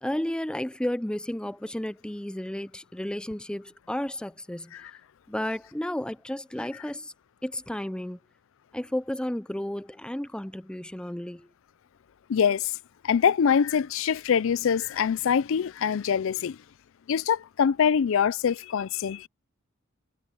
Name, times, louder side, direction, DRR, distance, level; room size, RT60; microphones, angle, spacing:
voice 1, 0.0-4.7 5.3-7.1 7.4-8.2 8.7-11.5, left 1 dB, 5° left, 0.4 m, -32 dB
voice 2, 12.3-12.8 13.0-16.6 17.1-19.3, left 7 dB, 65° left, 0.4 m, -24 dB
head